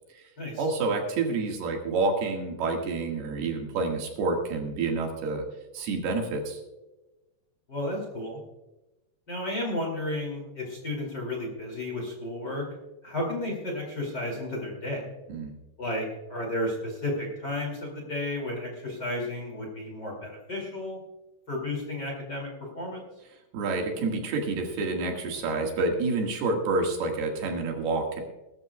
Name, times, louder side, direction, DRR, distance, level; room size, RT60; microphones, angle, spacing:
voice 1, 0.6-5.4 5.7-6.6 15.3-15.6 23.5-28.2, right 3 dB, 70° right, 2 dB, 3.6 m, -28 dB
voice 2, 7.7-8.4 9.3-12.7 13.0-15.1 15.8-21.0 21.5-22.5 22.8-23.0, left 1 dB, 30° left, -1 dB, 2.4 m, -32 dB
20.0 x 13.0 x 2.3 m, 1.0 s
omnidirectional pair, 4.8 m